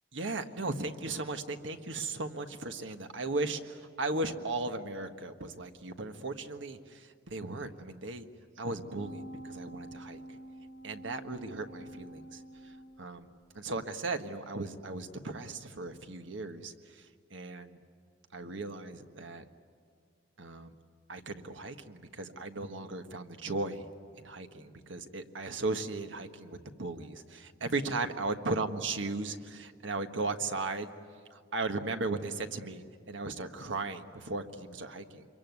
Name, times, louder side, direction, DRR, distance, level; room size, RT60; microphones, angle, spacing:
voice 1, 0.1-8.3 8.6-10.2 10.8-12.4 13.0-13.3 13.5-17.0 17.3-17.8 18.3-19.4 20.4-20.7 21.1-23.9 24.2-30.9 31.3-35.2, right 3 dB, 90° right, 7 dB, 1.5 m, -36 dB
sound 1, 8.8-13.4 13.8-13.9, right 1 dB, 40° right, 5.5 m, -47 dB
26.5 x 23.0 x 9.5 m, 2.2 s
head